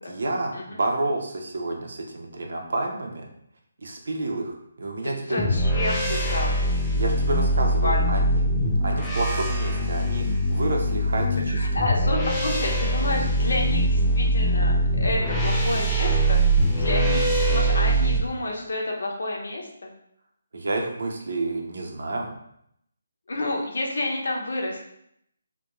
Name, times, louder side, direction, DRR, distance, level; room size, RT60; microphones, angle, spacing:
voice 1, 0.0-3.3 3.8-5.4 6.9-8.4 8.8-11.7 20.5-22.3, right 2 dB, 65° right, 1 dB, 0.5 m, -29 dB
voice 2, 5.0-6.5 7.8-8.3 11.5-16.4 16.7-19.9 23.3-24.8, left 1 dB, 70° left, -1 dB, 0.7 m, -29 dB
sound 1, 5.4-18.2, right 1 dB, 5° left, 0.3 m, -22 dB
2.3 x 2.2 x 2.9 m, 0.73 s
hypercardioid pair, 170°, 0 cm